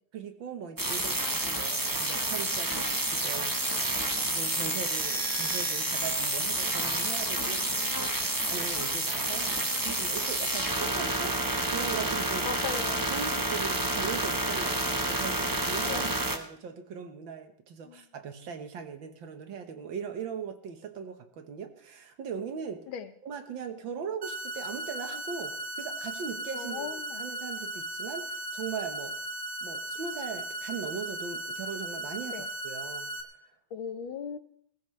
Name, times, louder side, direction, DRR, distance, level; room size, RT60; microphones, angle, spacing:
voice 1, 0.1-3.9 4.2-12.5 13.0-22.9 23.2-29.2 29.6-33.1, right 6 dB, 75° right, 7 dB, 2.1 m, -39 dB
sound 1, 0.8-16.4, right 2 dB, 15° right, 0.7 m, -29 dB
voice 2, 7.4-7.9 12.5-13.1 15.9-16.1 17.8-18.0 22.9-23.1 26.5-27.2 32.3-32.5 33.7-34.4, left 7 dB, 85° left, 10 dB, 1.8 m, -38 dB
sound 2, 24.2-33.2, right 1 dB, 35° right, 1.5 m, -37 dB
20.5 x 15.5 x 3.3 m, 0.63 s
omnidirectional pair, 2.1 m